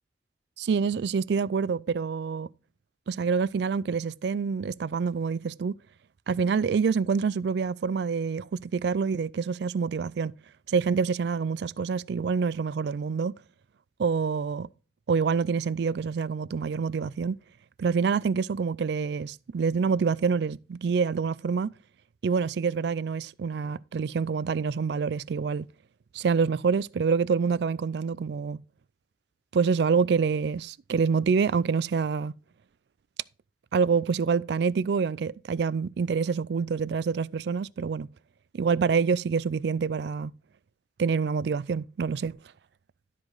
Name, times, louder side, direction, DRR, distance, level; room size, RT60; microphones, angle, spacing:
voice 1, 0.6-2.5 3.1-5.8 6.3-10.3 10.7-13.3 14.0-14.7 15.1-17.4 17.8-21.7 22.2-25.7 26.1-28.6 29.5-32.3 33.7-38.1 38.5-40.3 41.0-42.4, right 5 dB, 65° right, 0.3 m, -26 dB
12.5 x 5.0 x 3.9 m
head